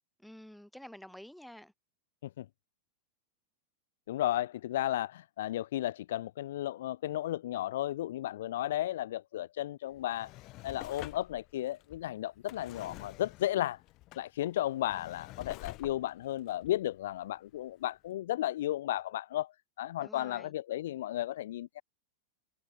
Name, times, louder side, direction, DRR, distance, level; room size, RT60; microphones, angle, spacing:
voice 1, 0.2-1.7 20.0-20.5, equal, ahead, 3.1 m, -50 dB
voice 2, 4.1-10.3 10.6-13.8 14.2-19.5 19.8-21.8, left 13 dB, 55° left, 0.3 m, -34 dB
Drawer open or close, 9.9-17.6 18.1-18.2, left 19 dB, 40° left, 1.7 m, -49 dB
figure-of-eight pair, 90°, 0 cm